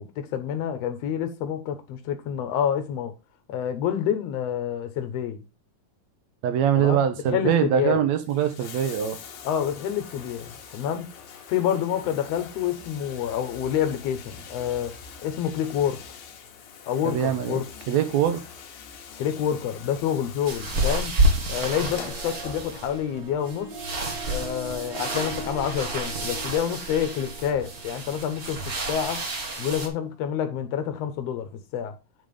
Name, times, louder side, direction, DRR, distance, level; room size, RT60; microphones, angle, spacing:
voice 1, 0.0-3.1 3.5-5.4 6.7-7.0 7.3-7.9 9.4-11.1 11.5-14.9 15.2-16.0 16.9-17.6 19.2-21.2 21.5-23.7 24.3-29.2 29.6-31.9, left 9 dB, 65° left, 1.9 m, -28 dB
voice 2, 6.4-9.2 17.1-17.6 17.9-18.4, right 9 dB, 70° right, 1.9 m, -23 dB
Bathtub (filling or washing), 8.1-23.1 24.2-24.3, left 6 dB, 90° left, 2.9 m, -44 dB
sound 1, 20.5-29.9, right 1 dB, 45° right, 1.2 m, -29 dB
Harp, 21.4-30.0, right 3 dB, 90° right, 3.7 m, -42 dB
8.9 x 3.6 x 5.2 m
omnidirectional pair, 3.8 m